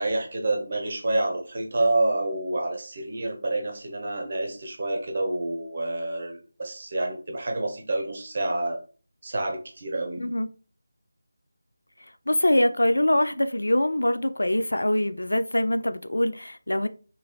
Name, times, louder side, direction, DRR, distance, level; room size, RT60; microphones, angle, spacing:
voice 1, 0.0-8.8 9.2-10.3, right 2 dB, 45° right, 0.7 m, -28 dB
voice 2, 12.3-16.9, left 1 dB, 75° left, 0.3 m, -23 dB
2.9 x 2.4 x 2.8 m
figure-of-eight pair, 165°, 0 cm